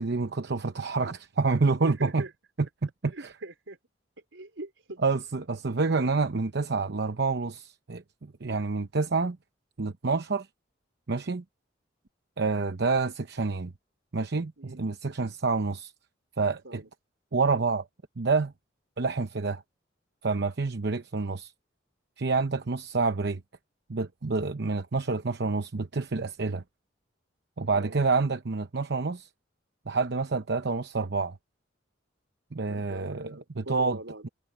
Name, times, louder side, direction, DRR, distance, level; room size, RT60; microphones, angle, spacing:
voice 1, 0.0-2.2 2.8-3.3 5.0-9.4 9.8-10.5 11.1-11.4 12.4-13.7 14.1-15.9 16.4-16.8 17.3-17.9 18.2-18.5 19.0-19.6 20.2-21.5 22.2-23.4 23.9-26.6 27.6-29.3 29.9-31.4 32.5-34.0, right 4 dB, 60° right, 0.8 m, -28 dB
voice 2, 1.8-2.3 3.1-3.8 4.3-5.0 14.6-14.8 16.6-16.9 27.7-28.0 32.7-34.3, right 2 dB, 80° right, 4.1 m, -42 dB
head